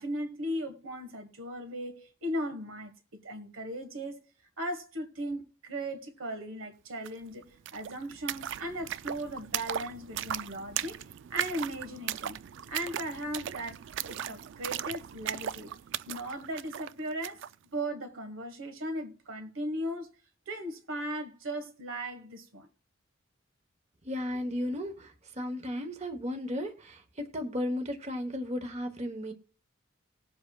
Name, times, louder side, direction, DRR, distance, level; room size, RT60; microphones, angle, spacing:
voice 1, 0.0-4.2 4.6-11.0 11.3-12.4 12.7-15.7 16.1-17.4 17.7-20.1 20.5-22.7, right 1 dB, 90° right, 1.5 m, -37 dB
sound 1, 7.0-7.1 7.4-17.5, right 10 dB, 65° right, 0.3 m, -38 dB
voice 2, 24.0-29.3, left 1 dB, 35° right, 1.1 m, -35 dB
19.5 x 7.8 x 2.3 m
head